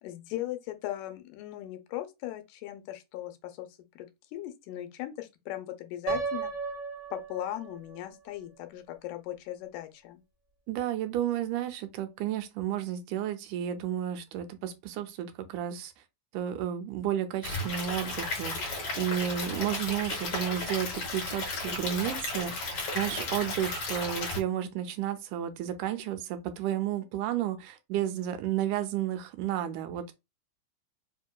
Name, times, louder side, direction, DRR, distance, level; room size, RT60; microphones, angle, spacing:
voice 1, 0.0-3.7 4.0-6.5 7.1-10.2, left 13 dB, 90° left, 2.2 m, -38 dB
Piano, 6.1-8.0, right 5 dB, 40° right, 1.3 m, -34 dB
voice 2, 10.7-15.9 16.3-30.1, right 11 dB, 85° right, 2.1 m, -32 dB
Stream / Liquid, 17.4-24.4, left 2 dB, 55° left, 1.9 m, -34 dB
4.9 x 2.7 x 2.2 m
omnidirectional pair, 3.6 m